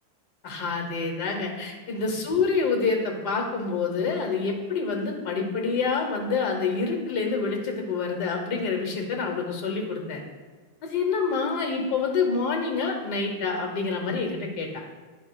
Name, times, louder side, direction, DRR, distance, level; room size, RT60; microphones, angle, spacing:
voice 1, 0.4-10.2 10.8-14.8, left 4 dB, 60° left, 3 dB, 1.4 m, -27 dB
10.5 x 5.3 x 2.3 m, 1.4 s
omnidirectional pair, 2.2 m